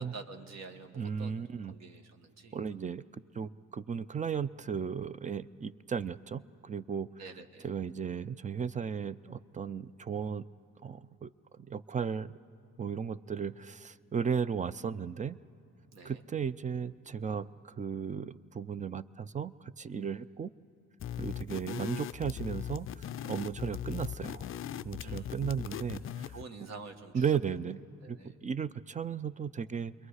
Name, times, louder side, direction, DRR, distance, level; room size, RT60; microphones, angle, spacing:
voice 1, 0.0-2.6 7.2-7.7 15.9-16.2 25.0-25.8 26.3-27.4 28.0-28.3, right 4 dB, 60° right, 5 dB, 1.5 m, -48 dB
voice 2, 1.0-1.7 2.5-3.0 3.4-7.1 7.6-10.5 10.8-11.3 11.6-12.4 12.8-15.4 16.0-20.5 21.2-24.5 24.8-26.3 27.1-27.8 28.1-29.9, right 7 dB, 25° right, 15 dB, 0.4 m, -35 dB
sound 1, 21.0-26.5, left 10 dB, 45° left, 0.4 m, -39 dB
29.0 x 22.0 x 4.9 m, 2.8 s
cardioid pair, 90°, 30 cm